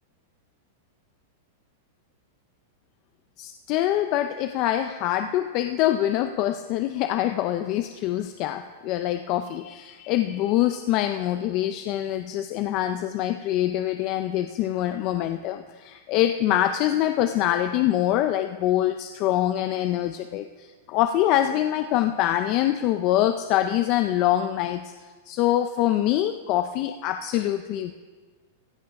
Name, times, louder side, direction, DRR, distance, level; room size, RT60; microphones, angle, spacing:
voice 1, 3.4-24.9 25.3-27.9, left 12 dB, 35° left, 8 dB, 0.4 m, -24 dB
15.5 x 7.3 x 5.9 m, 1.4 s
supercardioid pair, 160°, 0 cm